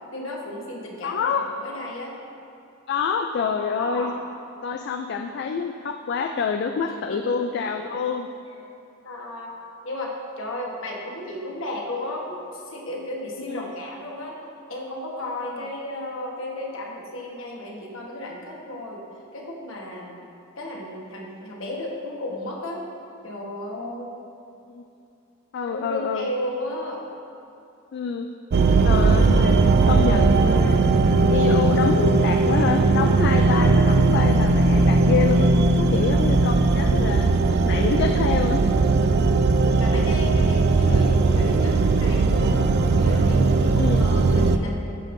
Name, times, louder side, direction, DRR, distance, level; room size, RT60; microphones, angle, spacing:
voice 1, 0.1-1.3 1.6-2.2 3.8-4.1 7.1-7.7 8.5-8.6 9.0-9.6 9.8-14.4 14.7-19.0 19.3-20.2 20.6-22.8 23.2-24.2 25.7-27.0 39.8-42.7 42.9-44.8, left 1 dB, 70° left, -2 dB, 1.2 m, -34 dB
voice 2, 1.0-1.4 2.9-4.1 4.6-8.3 13.5-13.7 15.6-15.7 24.7-24.8 25.5-26.3 27.9-28.3 28.8-30.8 31.3-35.5 35.8-37.3 37.7-38.6 43.8-44.1, left 5 dB, 55° left, 5 dB, 0.3 m, -27 dB
sound 1, 28.5-44.6, right 3 dB, 55° right, 0.4 m, -18 dB
14.5 x 5.2 x 2.6 m, 2.7 s
head